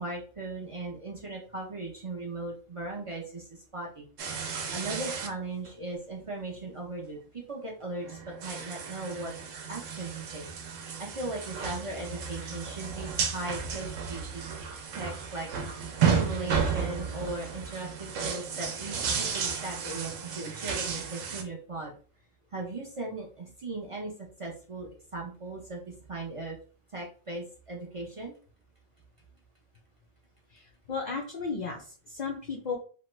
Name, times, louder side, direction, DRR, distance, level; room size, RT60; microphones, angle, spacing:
voice 1, 0.0-4.0 4.5-9.3 9.7-10.5 10.7-14.4 14.9-15.8 16.1-21.9 22.5-24.1 24.4-26.6 26.9-28.3, right 2 dB, 50° right, -2 dB, 0.3 m, -38 dB
sound 1, 4.2-5.3 5.7-5.8 8.0-21.4, right 6 dB, 75° right, 0.9 m, -33 dB
voice 2, 30.5-32.8, left 4 dB, 75° left, 0 dB, 0.4 m, -35 dB
2.9 x 2.2 x 3.0 m, 0.40 s
omnidirectional pair, 1.3 m